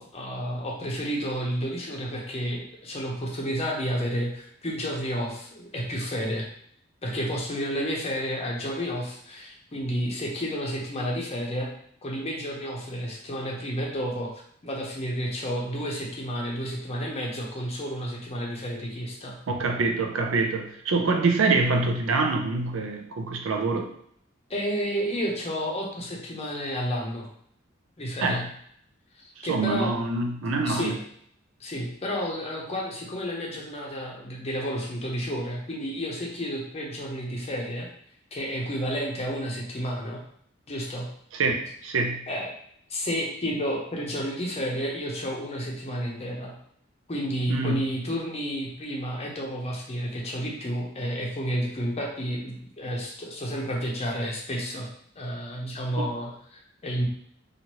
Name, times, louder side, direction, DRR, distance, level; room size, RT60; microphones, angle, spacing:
voice 1, 0.0-6.5 7.0-11.7 12.0-14.3 14.6-19.4 24.5-27.3 28.0-28.4 29.2-29.9 30.6-31.0 31.6-37.9 38.3-40.2 40.7-41.1 42.3-42.5 42.9-46.6 47.1-54.9 55.2-57.1, equal, 30° left, -1 dB, 0.7 m, -31 dB
voice 2, 19.5-23.9 28.2-28.5 29.4-31.0 41.3-42.2 47.5-47.9 56.0-56.1, right 3 dB, 75° right, 3 dB, 0.5 m, -25 dB
3.0 x 2.4 x 2.9 m, 0.66 s
head